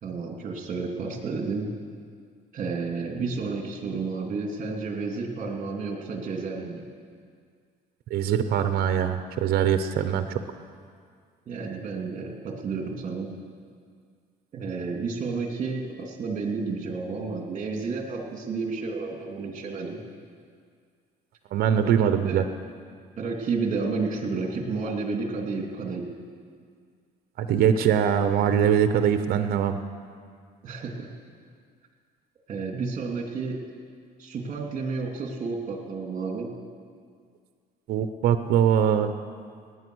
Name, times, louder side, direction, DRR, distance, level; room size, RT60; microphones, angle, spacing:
voice 1, 0.0-1.7 2.5-6.8 11.5-13.3 14.5-20.0 21.8-22.4 23.2-26.1 30.6-31.1 32.5-33.6 34.2-36.5, right 4 dB, 45° right, 1 dB, 2.7 m, -31 dB
voice 2, 8.1-10.4 21.5-22.4 27.4-29.8 37.9-39.1, right 8 dB, 65° right, 9 dB, 0.8 m, -22 dB
18.5 x 9.9 x 6.3 m, 2.1 s
cardioid pair, 110°, 17 cm